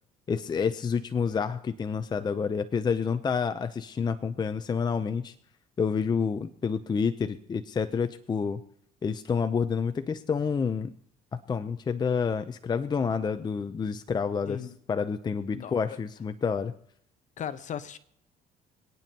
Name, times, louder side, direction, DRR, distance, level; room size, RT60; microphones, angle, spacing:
voice 1, 0.3-5.3 5.8-8.6 9.0-10.9 11.3-16.7, left 6 dB, 25° left, 0.5 m, -29 dB
voice 2, 17.4-18.0, left 8 dB, 45° left, 0.9 m, -36 dB
27.0 x 9.1 x 2.8 m
cardioid pair, 110°, 17 cm